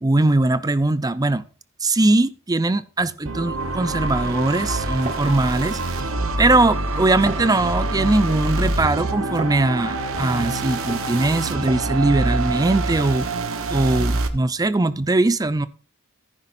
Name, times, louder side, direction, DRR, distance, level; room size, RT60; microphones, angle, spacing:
voice 1, 0.0-1.4 1.8-5.8 6.4-13.3 13.7-15.7, right 2 dB, 15° right, 0.5 m, -20 dB
sound 1, 3.2-14.3, right 2 dB, 65° right, 1.2 m, -25 dB
sound 2, 4.3-13.2, right 3 dB, 30° right, 1.2 m, -39 dB
15.0 x 9.9 x 2.6 m
head